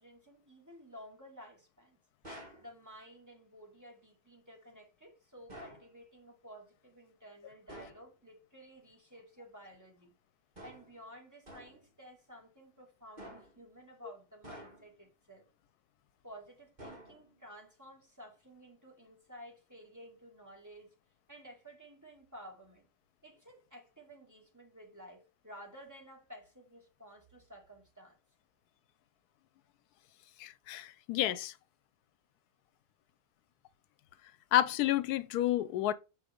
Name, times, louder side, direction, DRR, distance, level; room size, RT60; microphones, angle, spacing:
voice 1, 0.0-2.0 2.6-10.1 10.6-15.5 16.2-21.0 21.3-22.9 23.2-28.2, equal, 10° right, 2.1 m, -53 dB
sound 1, 2.2-2.7 5.5-5.9 7.7-8.1 10.5-11.0 11.5-11.9 13.2-13.6 14.4-15.0 16.8-17.4, right 1 dB, 30° right, 2.6 m, -50 dB
voice 2, 30.4-31.5 34.5-35.9, left 13 dB, 85° left, 1.1 m, -30 dB
6.6 x 4.7 x 5.1 m
omnidirectional pair, 1.6 m